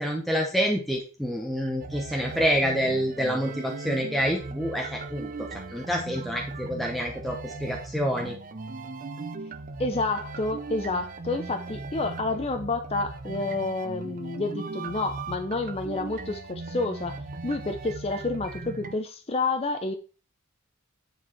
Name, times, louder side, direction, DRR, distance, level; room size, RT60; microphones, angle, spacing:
voice 1, 0.0-8.4, equal, ahead, 0.8 m, -27 dB
sound 1, 1.8-19.0, right 3 dB, 35° right, 0.6 m, -38 dB
voice 2, 9.8-17.1 17.4-19.9, left 3 dB, 25° left, 0.5 m, -29 dB
9.9 x 4.5 x 4.4 m
head